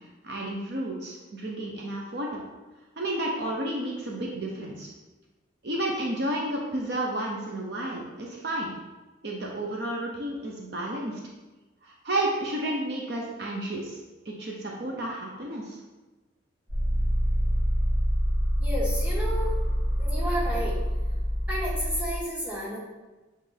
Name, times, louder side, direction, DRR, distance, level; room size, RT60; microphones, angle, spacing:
voice 1, 0.2-2.4 3.0-4.9 5.6-8.7 9.2-11.2 11.8-14.0 14.3-15.8, right 1 dB, 55° right, -1 dB, 0.8 m, -31 dB
sound 1, 16.7-22.2, equal, 80° right, 2.0 m, -26 dB
voice 2, 18.6-19.6 20.0-20.8 21.5-22.8, equal, 5° right, -6 dB, 1.7 m, -31 dB
7.6 x 3.9 x 3.4 m, 1.2 s
head